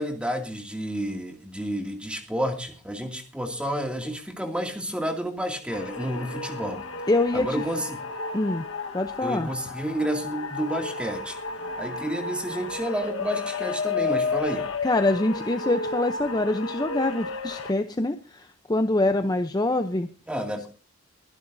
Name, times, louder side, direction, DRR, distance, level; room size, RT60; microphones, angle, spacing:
voice 1, 0.0-6.8 7.3-8.0 9.2-11.4 11.8-14.7 20.3-20.7, equal, 5° right, 3 dB, 2.3 m, -30 dB
sound 1, 5.7-17.7, left 4 dB, 65° left, 1.4 m, -32 dB
voice 2, 7.1-7.6 8.3-8.6 8.9-9.5 14.8-20.1, left 2 dB, 20° left, 8 dB, 0.6 m, -25 dB
23.5 x 11.0 x 2.7 m, 0.36 s
head